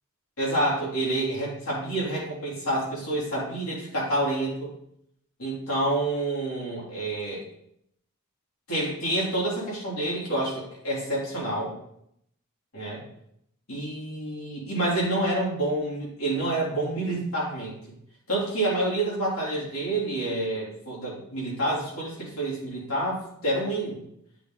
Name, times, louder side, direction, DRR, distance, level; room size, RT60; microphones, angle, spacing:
voice 1, 0.4-4.7 5.4-7.5 8.7-11.7 12.7-13.0 13.7-17.7 18.3-24.0, right 1 dB, 80° left, -5 dB, 2.7 m, -28 dB
8.9 x 3.7 x 3.6 m, 0.73 s
head